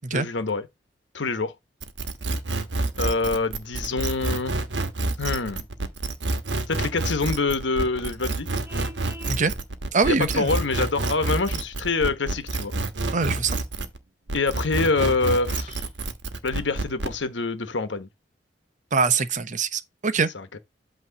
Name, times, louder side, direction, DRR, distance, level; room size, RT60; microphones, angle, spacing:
voice 1, 0.1-0.7 1.1-1.5 3.0-4.6 5.2-5.6 6.7-8.5 10.0-12.7 14.3-15.9 16.4-18.1 20.3-20.6, left 3 dB, 85° left, 1.1 m, -26 dB
sound 1, 1.8-14.0 14.3-17.2, right 2 dB, 75° right, 1.2 m, -28 dB
Vehicle horn car horn honking, 8.6-9.4, equal, 10° right, 0.7 m, -42 dB
voice 2, 9.9-10.5 13.1-13.6 18.9-20.3, right 4 dB, 45° right, 0.8 m, -23 dB
8.5 x 3.1 x 6.4 m
head